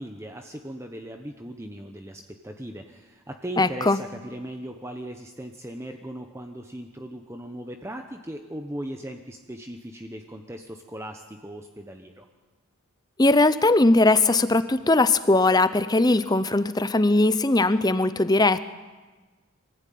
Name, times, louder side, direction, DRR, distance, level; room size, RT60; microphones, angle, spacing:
voice 1, 0.0-12.3, right 1 dB, 10° right, 4 dB, 1.0 m, -38 dB
voice 2, 3.6-4.0 13.2-18.7, left 2 dB, 20° left, 13 dB, 0.7 m, -20 dB
24.5 x 15.5 x 9.4 m, 1.3 s
head